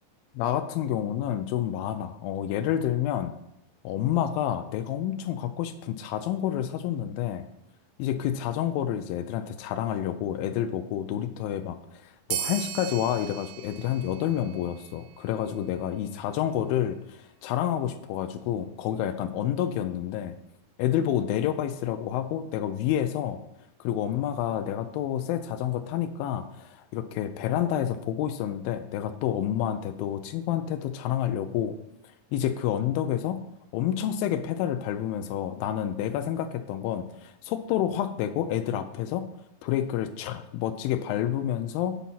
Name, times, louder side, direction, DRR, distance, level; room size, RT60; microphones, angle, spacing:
voice 1, 0.3-3.3 3.8-7.5 8.0-20.3 20.8-23.4 23.8-31.8 32.3-33.4 33.7-39.3 39.6-42.0, left 10 dB, 85° left, 9 dB, 2.3 m, -29 dB
sound 1, 12.3-15.3, right 10 dB, 80° right, 2.1 m, -37 dB
8.4 x 4.1 x 5.7 m, 0.80 s
omnidirectional pair, 4.1 m